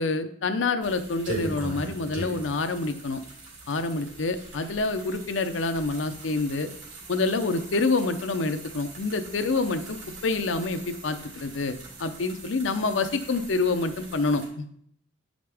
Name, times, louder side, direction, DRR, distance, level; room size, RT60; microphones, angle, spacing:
voice 1, 0.0-3.2 3.7-6.7 7.1-14.6, left 3 dB, 85° left, 9 dB, 0.6 m, -27 dB
sound 1, 0.8-14.5, right 2 dB, 75° right, 2.9 m, -41 dB
8.6 x 5.1 x 3.4 m, 0.67 s
head